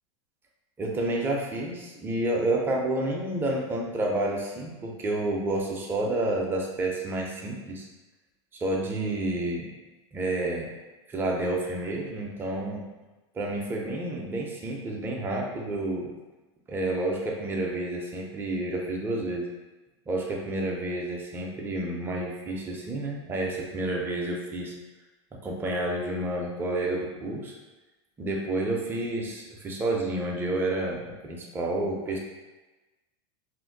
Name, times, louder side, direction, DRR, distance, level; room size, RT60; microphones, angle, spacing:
voice 1, 0.8-7.9 8.6-9.7 10.1-10.7 11.1-12.9 13.3-16.1 16.7-19.5 20.1-24.7 25.3-27.6 28.2-32.2, right 2 dB, 15° right, -1 dB, 0.4 m, -30 dB
2.5 x 2.1 x 3.9 m, 1.1 s
supercardioid pair, 150°, 15 cm